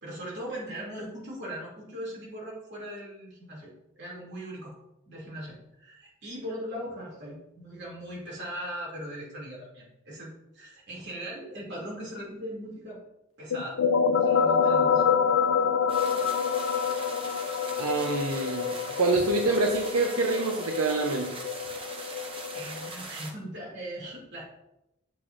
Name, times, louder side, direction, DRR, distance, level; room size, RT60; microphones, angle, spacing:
voice 1, 0.0-3.7 4.0-4.7 5.1-13.0 13.4-13.8 14.1-15.0 22.5-24.5, equal, 55° right, -4 dB, 2.6 m, -39 dB
sound 1, 13.5-22.9, left 6 dB, 70° left, 0.4 m, -27 dB
sound 2, 15.9-23.3, right 3 dB, 25° right, 0.8 m, -41 dB
voice 2, 17.8-21.4, right 3 dB, 85° right, 2 dB, 0.7 m, -26 dB
7.7 x 6.0 x 2.5 m, 0.89 s
head